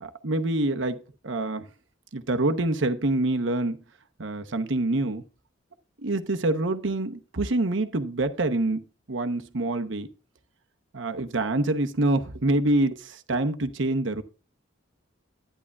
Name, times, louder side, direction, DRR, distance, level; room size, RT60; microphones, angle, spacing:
voice 1, 0.0-1.6 2.1-3.8 4.2-5.2 6.0-10.1 10.9-14.2, right 2 dB, 70° right, 8 dB, 0.9 m, -26 dB
11.0 x 10.0 x 2.4 m, 0.36 s
head